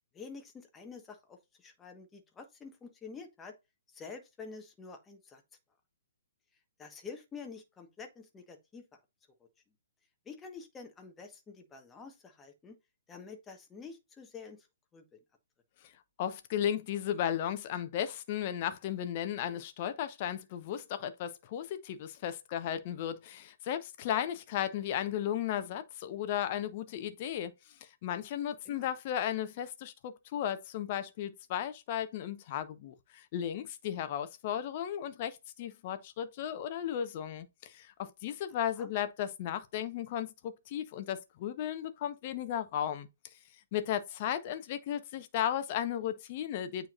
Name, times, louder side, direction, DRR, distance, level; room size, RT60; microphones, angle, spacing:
voice 1, 0.1-3.5 3.9-5.4 6.8-8.8 10.2-12.8 13.1-14.7 14.9-15.0 28.6-28.9 38.8-38.9, left 5 dB, 15° left, 1.3 m, -48 dB
voice 2, 16.2-27.5 27.8-43.1 43.7-46.9, left 10 dB, 40° left, 1.0 m, -35 dB
8.8 x 4.6 x 2.5 m
figure-of-eight pair, 130°, 0 cm